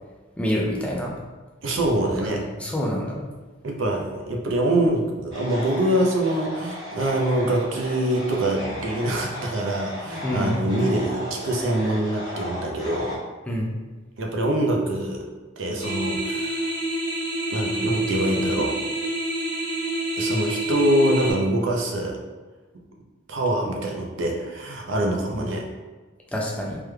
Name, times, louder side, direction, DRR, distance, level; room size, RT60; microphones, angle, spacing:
voice 1, 0.4-1.1 2.2-2.3 2.6-3.2 10.2-10.7 13.5-13.7 26.3-26.8, equal, 5° left, -3 dB, 0.4 m, -26 dB
voice 2, 1.6-2.4 3.6-13.2 14.2-15.3 15.6-16.7 17.5-18.8 20.2-22.2 23.3-25.6, right 1 dB, 70° right, 0 dB, 0.5 m, -24 dB
sound 1, 5.3-13.2, left 1 dB, 40° right, 1.5 m, -36 dB
sound 2, 15.8-21.3, right 1 dB, 25° left, 0.8 m, -27 dB
3.3 x 3.2 x 2.2 m, 1.3 s
head